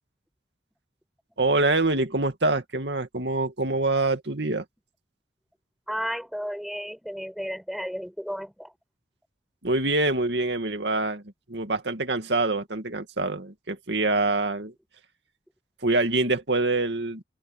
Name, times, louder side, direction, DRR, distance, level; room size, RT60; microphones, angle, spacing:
voice 1, 1.4-4.6 9.6-11.2 11.5-14.7 15.8-17.2, right 2 dB, 70° right, 2.3 m, -25 dB
voice 2, 5.9-8.7, equal, ahead, 5.6 m, -33 dB
open air
head